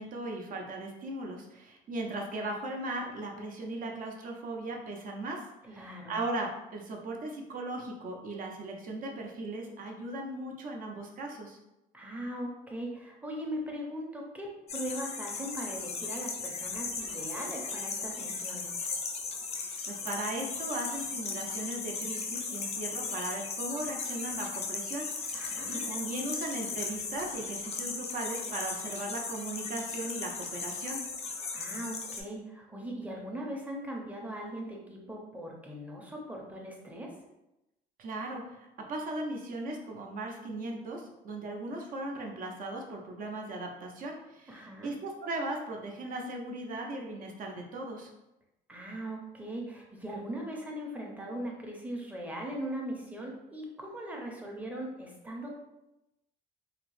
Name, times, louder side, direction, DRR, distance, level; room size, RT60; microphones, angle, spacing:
voice 1, 0.0-5.4 5.7-11.6 19.5-31.0 38.0-48.1, right 2 dB, 55° right, 1 dB, 0.6 m, -38 dB
voice 2, 5.6-6.2 11.9-18.7 25.3-25.8 31.5-37.1 44.5-44.9 48.7-55.6, right 1 dB, 10° right, -1 dB, 0.6 m, -39 dB
sound 1, 14.7-32.2, left 4 dB, 40° left, 0.5 m, -37 dB
2.8 x 2.0 x 3.1 m, 0.92 s
cardioid pair, 110°, 17 cm